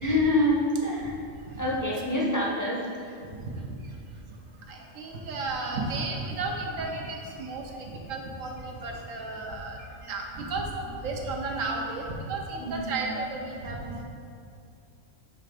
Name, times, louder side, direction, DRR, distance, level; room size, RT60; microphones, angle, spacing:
voice 1, 0.0-1.1 1.6-2.9 12.6-13.0, left 1 dB, 20° left, -4 dB, 0.6 m, -26 dB
voice 2, 4.7-14.0, right 3 dB, 85° right, 1 dB, 1.2 m, -33 dB
7.0 x 3.3 x 5.0 m, 2.4 s
omnidirectional pair, 1.3 m